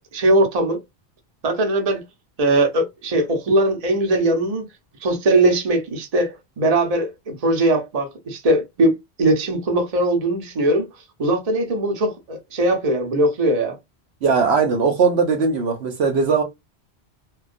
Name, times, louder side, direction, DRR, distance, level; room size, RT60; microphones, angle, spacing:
voice 1, 0.1-0.8 1.4-2.0 2.4-4.7 5.0-10.9 11.2-13.8, right 1 dB, 40° right, 0.7 m, -20 dB
voice 2, 14.2-16.4, right 5 dB, 80° right, 1.0 m, -19 dB
2.3 x 2.2 x 2.4 m
omnidirectional pair, 1.1 m